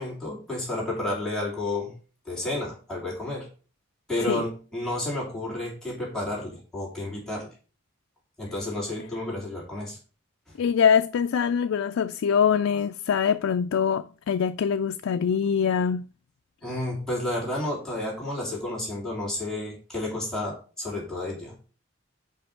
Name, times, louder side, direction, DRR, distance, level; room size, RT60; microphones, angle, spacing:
voice 1, 0.0-1.9 2.2-3.5 4.1-7.5 8.4-10.0 10.5-10.6 16.6-21.7, left 1 dB, 5° left, 3.1 m, -31 dB
voice 2, 10.6-16.1, left 7 dB, 80° left, 0.4 m, -23 dB
5.4 x 5.2 x 5.7 m
head